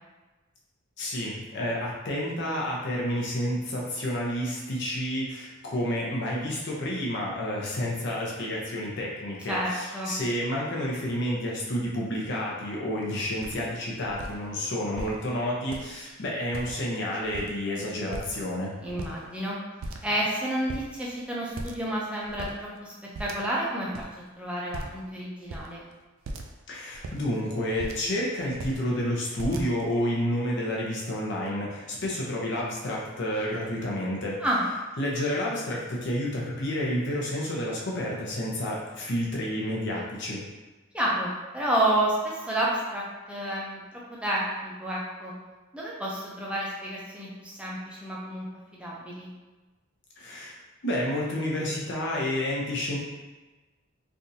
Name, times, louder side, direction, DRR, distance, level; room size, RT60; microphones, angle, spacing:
voice 1, 1.0-18.8 26.7-34.4 35.0-40.4 50.2-50.5 50.8-53.0, left 1 dB, 55° left, -4 dB, 0.7 m, -30 dB
voice 2, 9.5-10.1 18.8-19.6 20.0-22.9 23.2-24.0 24.4-25.8 34.4-34.6 40.9-43.8 44.2-45.3 45.7-49.3, right 1 dB, 5° right, -5 dB, 0.6 m, -30 dB
sound 1, 13.0-13.1 13.4-13.7 14.0-14.3 15.0-15.2 15.6-16.1 16.5-17.0 17.2-17.7 18.1-18.6 18.8-19.5 19.8-20.3 20.7-20.9 21.5-21.9 22.2-22.6 23.1-23.7 23.9-24.1 24.7-25.1 25.5-25.7 26.3-26.6 26.9-28.1 28.5-28.8 29.4-30.0, right 2 dB, 75° right, 0.4 m, -38 dB
3.4 x 2.6 x 2.7 m, 1.2 s
head